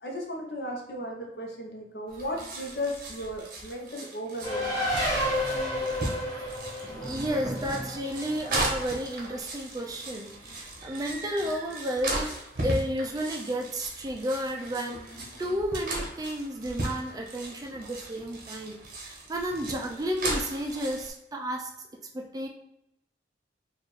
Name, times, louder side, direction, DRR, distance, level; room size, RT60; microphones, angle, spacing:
voice 1, 0.0-4.7, equal, 65° left, 1 dB, 0.8 m, -35 dB
sound 1, 2.1-21.1, right 1 dB, 55° right, 0.9 m, -37 dB
Race car auto racing, 4.4-9.4, left 1 dB, 20° left, 1.3 m, -31 dB
voice 2, 6.8-15.0 15.4-21.7 22.1-22.5, equal, 20° right, 2 dB, 0.4 m, -32 dB
4.3 x 2.5 x 3.2 m, 0.83 s
head